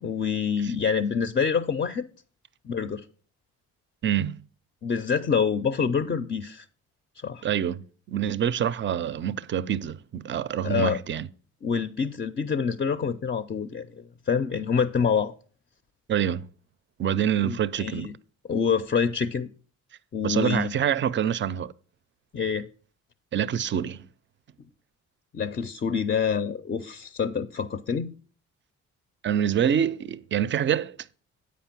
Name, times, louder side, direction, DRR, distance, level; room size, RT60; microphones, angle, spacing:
voice 1, 0.0-2.1 2.6-3.0 4.8-6.7 7.2-7.4 10.6-11.0 11.6-15.3 17.4-18.1 18.5-19.5 20.1-20.7 22.3-22.7 25.3-28.1, left 6 dB, 30° left, 0.5 m, -26 dB
voice 2, 4.0-4.4 7.4-11.3 16.1-16.5 17.0-18.1 20.2-21.7 23.3-24.1 29.2-31.0, right 9 dB, 40° right, 0.5 m, -26 dB
8.1 x 5.1 x 5.8 m
cardioid pair, 90°, 30 cm